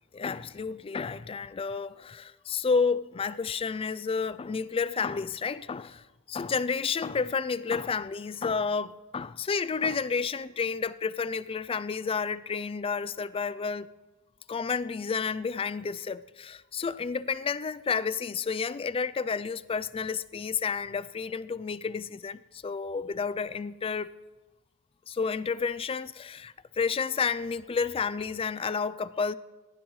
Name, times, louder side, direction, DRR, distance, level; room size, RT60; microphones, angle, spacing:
voice 1, 0.1-13.9 14.5-24.1 25.1-29.3, left 5 dB, 25° left, 0.3 m, -31 dB
21.5 x 16.0 x 3.2 m
head